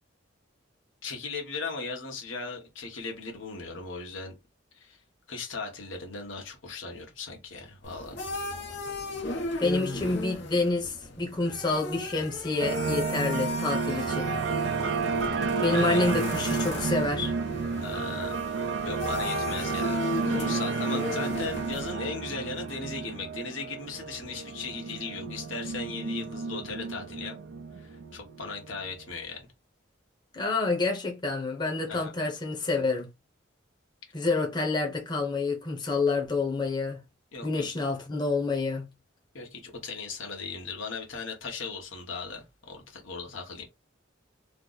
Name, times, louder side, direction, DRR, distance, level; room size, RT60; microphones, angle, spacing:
voice 1, 1.0-4.3 4.7-5.0 5.3-8.2 15.7-16.0 17.8-27.4 27.7-29.5 31.8-32.1 37.3-37.7 39.3-43.7, left 4 dB, 80° left, 1.2 m, -37 dB
sound 1, 7.8-21.9, left 2 dB, 60° left, 0.9 m, -36 dB
voice 2, 9.6-14.3 15.6-17.3 30.3-33.1 34.1-37.0 37.4-38.9, left 3 dB, 25° left, 0.9 m, -28 dB
sound 2, 12.6-28.9, right 5 dB, 70° right, 0.5 m, -31 dB
3.2 x 2.1 x 3.8 m
head